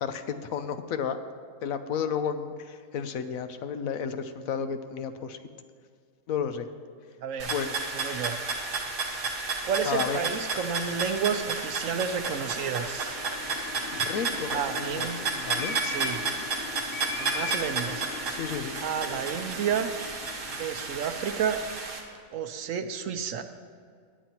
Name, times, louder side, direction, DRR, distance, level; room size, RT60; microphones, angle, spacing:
voice 1, 0.0-1.2 1.6-5.4 6.3-6.7 7.5-7.7 9.8-10.3 13.9-15.1 15.3-15.7 16.2-16.3 18.3-18.8, left 7 dB, 80° left, 9 dB, 1.1 m, -32 dB
voice 2, 7.2-7.5 7.9-8.4 9.6-13.2 14.5-15.2 15.8-16.3 17.2-18.1 18.8-20.0 20.5-21.6 22.3-23.5, right 7 dB, 70° right, 8 dB, 1.0 m, -31 dB
sound 1, 7.4-22.0, right 3 dB, 90° right, 2.0 m, -32 dB
sound 2, 12.9-21.4, left 3 dB, 40° left, 0.9 m, -40 dB
17.5 x 10.5 x 3.0 m, 2.1 s
omnidirectional pair, 1.5 m